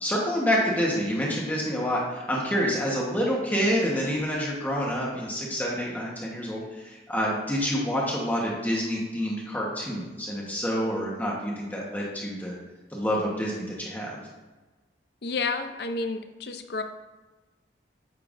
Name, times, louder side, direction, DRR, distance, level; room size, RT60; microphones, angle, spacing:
voice 1, 0.0-12.5 12.9-14.2, equal, 10° left, -4 dB, 1.2 m, -27 dB
voice 2, 15.2-16.8, left 3 dB, 60° left, 8 dB, 0.6 m, -30 dB
8.7 x 6.7 x 2.6 m, 1.2 s
head